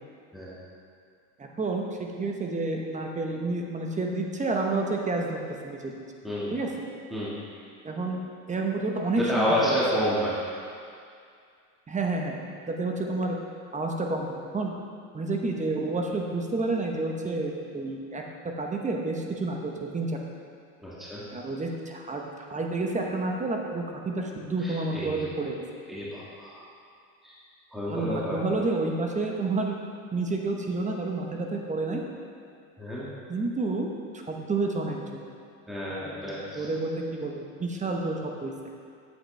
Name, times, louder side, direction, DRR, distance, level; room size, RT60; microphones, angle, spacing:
voice 1, 1.4-5.9 6.5-6.7 7.8-8.2 8.5-9.8 11.9-12.4 12.7-13.4 13.7-14.7 15.1-18.2 18.6-20.2 21.3-22.2 22.5-25.6 27.9-29.7 30.1-32.0 33.3-35.2 35.9-38.5, right 3 dB, 20° right, 1 dB, 1.0 m, -30 dB
voice 2, 9.2-10.4 20.8-21.2 24.6-25.2 25.9-26.6 27.2-27.3 27.7-28.4 32.8-33.1 35.7-36.7, equal, ahead, -8 dB, 1.8 m, -29 dB
9.1 x 7.6 x 3.3 m, 2.3 s
supercardioid pair, 105°, 40 cm